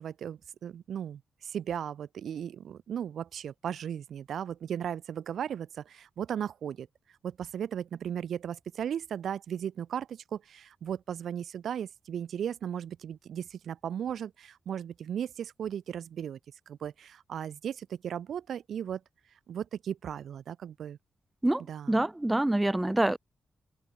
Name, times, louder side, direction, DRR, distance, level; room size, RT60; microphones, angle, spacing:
voice 1, 0.0-6.9 7.2-16.4 16.7-19.0 19.5-21.0 21.7-21.9, right 9 dB, 75° right, 5.2 m, -36 dB
voice 2, 21.9-23.2, right 1 dB, 15° right, 1.5 m, -26 dB
open air
supercardioid pair, 45°, 0 cm